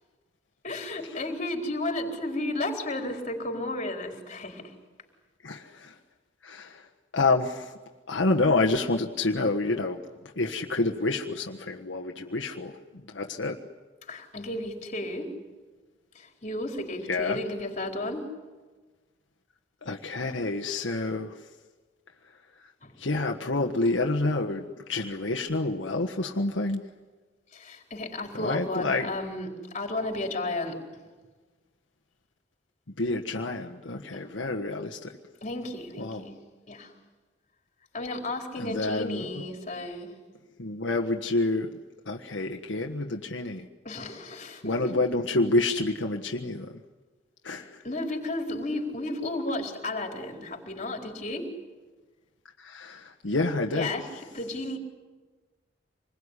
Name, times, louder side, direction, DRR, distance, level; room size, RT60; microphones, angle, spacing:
voice 1, 0.6-4.7 14.1-15.3 16.1-18.3 22.8-23.0 27.5-30.8 34.1-34.2 35.4-36.4 36.7-36.9 37.9-40.2 43.8-44.9 47.5-51.5 53.7-54.8, left 2 dB, 40° left, 3 dB, 4.5 m, -33 dB
voice 2, 5.4-5.9 6.4-6.8 7.1-7.7 8.1-10.0 10.4-13.6 17.1-17.4 19.8-21.3 23.0-26.8 28.4-29.1 33.0-35.1 36.0-36.2 38.6-39.4 40.6-41.7 42.1-43.6 44.6-46.7 47.4-47.8 52.6-53.9, left 2 dB, 80° left, 2 dB, 1.5 m, -28 dB
27.0 x 21.5 x 9.9 m, 1.3 s
head